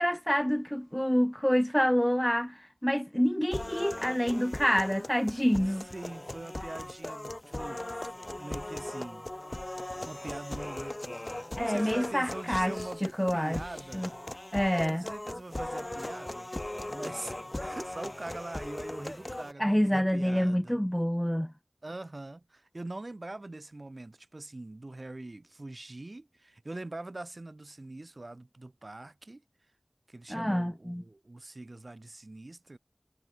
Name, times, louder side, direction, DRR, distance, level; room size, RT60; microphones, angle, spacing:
voice 1, 0.0-5.8 11.6-12.7 13.0-13.6 13.9-14.1 14.5-15.0 19.6-21.5 30.3-31.0, equal, 10° left, 0.5 m, -27 dB
sound 1, 3.5-19.5, left 1 dB, 40° left, 1.0 m, -39 dB
voice 2, 5.7-9.3 10.0-11.2 11.5-13.0 13.3-14.2 14.7-20.8 21.8-29.4 30.1-32.8, right 2 dB, 65° right, 3.3 m, -43 dB
wide cardioid pair, 40°, 0 cm